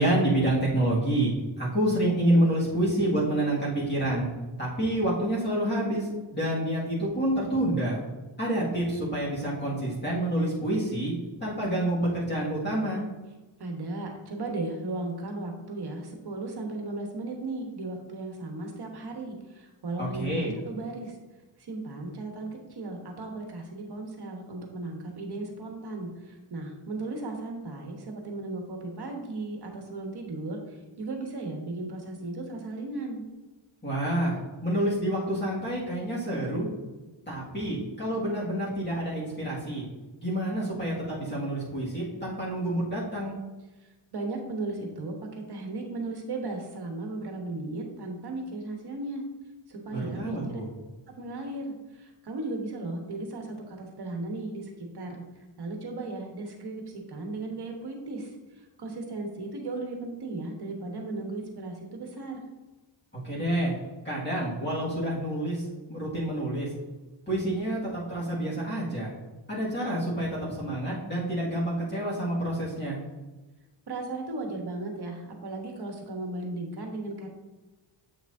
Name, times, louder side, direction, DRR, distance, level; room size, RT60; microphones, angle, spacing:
voice 1, 0.0-4.3 4.6-8.0 8.4-11.1 11.4-13.0 20.0-20.5 33.8-36.7 37.3-39.8 40.2-43.4 49.9-50.7 63.2-63.8 64.0-65.6 65.9-66.7 67.3-69.1 69.5-73.0, right 1 dB, 20° left, -7 dB, 1.9 m, -28 dB
voice 2, 13.6-21.1 21.6-30.6 31.0-33.2 44.1-45.2 45.5-49.2 49.7-50.6 51.2-55.2 55.6-56.8 57.1-58.3 58.8-62.4 73.9-77.3, right 2 dB, 55° right, 2 dB, 1.2 m, -36 dB
7.6 x 6.0 x 2.7 m, 1.2 s
wide cardioid pair, 145°, 47 cm